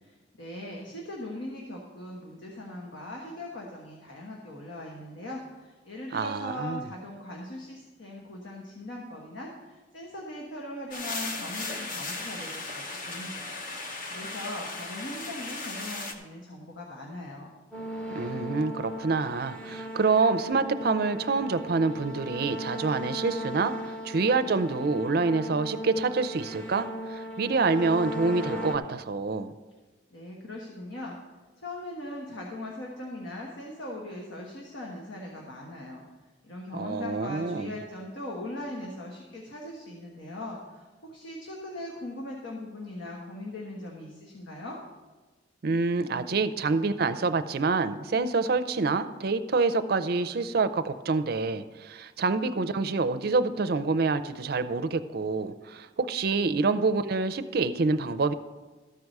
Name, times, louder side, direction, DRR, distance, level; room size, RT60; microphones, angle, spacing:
voice 1, 0.0-13.6 14.1-17.5 30.1-31.2 31.6-36.0 36.4-44.8, left 1 dB, 75° left, -2 dB, 1.3 m, -40 dB
voice 2, 6.1-6.8 18.1-23.7 24.0-29.5 36.7-37.7 45.6-58.3, right 4 dB, 55° right, 11 dB, 0.5 m, -27 dB
sound 1, 10.9-16.1, left 3 dB, 45° left, 0.9 m, -36 dB
sound 2, 17.7-28.8, equal, 5° left, 0.7 m, -37 dB
13.5 x 4.7 x 6.5 m, 1.3 s
head